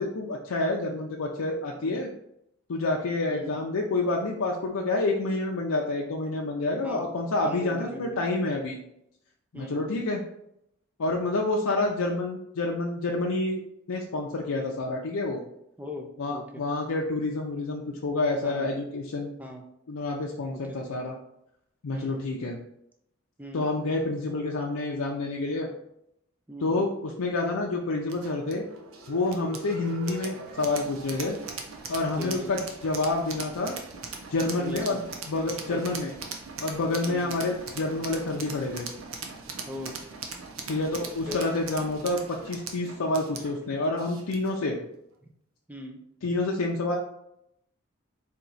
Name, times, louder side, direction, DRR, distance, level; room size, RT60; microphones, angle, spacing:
voice 1, 0.0-2.1 2.7-8.8 9.5-10.2 11.0-13.6 13.9-15.4 16.2-19.3 19.9-21.2 21.8-22.6 23.5-25.7 26.6-28.6 29.1-31.4 31.9-33.7 34.3-35.0 35.3-36.1 36.6-38.9 40.7-44.8 46.2-47.0, left 2 dB, 80° left, -1 dB, 0.5 m, -28 dB
voice 2, 3.3-3.6 6.8-7.1 7.4-8.2 9.5-9.9 15.8-16.6 18.4-18.7 19.4-19.6 20.5-20.8 21.9-22.3 23.4-23.7 26.5-26.9 29.8-29.9 32.2-32.5 34.6-35.0 35.7-35.8 37.1-37.3 39.6-40.0 41.3-41.5 45.7-46.0, left 1 dB, 5° right, 3 dB, 0.4 m, -39 dB
sound 1, 28.1-44.6, right 4 dB, 70° right, 0.7 m, -40 dB
4.4 x 2.8 x 3.9 m, 0.78 s
head